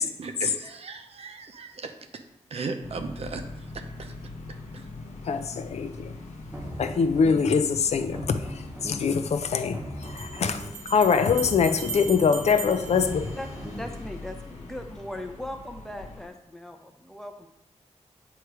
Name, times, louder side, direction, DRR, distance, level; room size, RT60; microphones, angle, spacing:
voice 1, 0.0-2.2 2.5-4.1 4.7-4.9, right 4 dB, 60° right, 6 dB, 0.7 m, -37 dB
sound 1, 2.8-16.3, left 2 dB, 90° left, 1.0 m, -42 dB
voice 2, 5.2-6.1 6.8-13.3, left 6 dB, 65° left, 9 dB, 0.5 m, -24 dB
sound 2, 6.4-7.7 8.0-9.3 9.6-10.9 11.2-14.0, equal, 15° right, 1.0 m, -39 dB
sound 3, 10.0-14.0, right 6 dB, 90° right, 0.7 m, -39 dB
voice 3, 13.8-17.5, left 1 dB, 5° left, 4 dB, 0.6 m, -39 dB
8.1 x 3.1 x 4.7 m, 0.87 s
wide cardioid pair, 150°, 12 cm